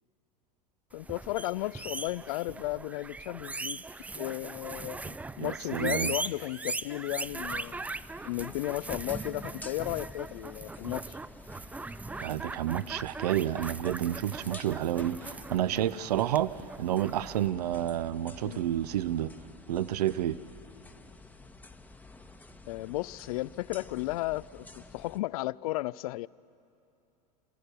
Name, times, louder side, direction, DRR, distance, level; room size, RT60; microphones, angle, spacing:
voice 1, 0.9-3.8 4.1-7.8 8.2-11.2 18.4-18.6 22.6-26.3, left 18 dB, 65° left, 0.4 m, -34 dB
sound 1, 1.0-17.5, right 3 dB, 5° right, 0.4 m, -40 dB
voice 2, 5.4-6.1 12.2-16.5 16.8-19.3 19.7-20.4, right 12 dB, 75° right, 0.6 m, -30 dB
sound 2, 7.5-25.2, left 3 dB, 10° left, 0.9 m, -50 dB
28.0 x 15.5 x 6.8 m
hypercardioid pair, 90°, 21 cm